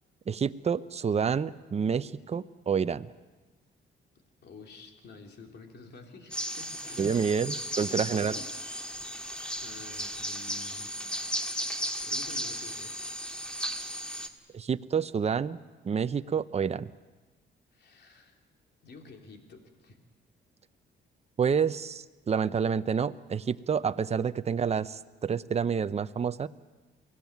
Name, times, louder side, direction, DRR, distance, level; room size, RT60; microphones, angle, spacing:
voice 1, 0.3-3.1 7.0-8.3 14.5-15.6 15.8-16.9 21.4-26.5, right 6 dB, 35° right, 13 dB, 0.7 m, -28 dB
voice 2, 4.4-8.5 9.6-10.9 12.0-13.0 17.7-18.4 18.8-20.0, left 3 dB, 55° left, 3 dB, 3.1 m, -49 dB
sound 1, 6.3-14.3, equal, 5° left, 1.8 m, -35 dB
23.0 x 17.0 x 9.4 m, 1.2 s
cardioid pair, 90°, 20 cm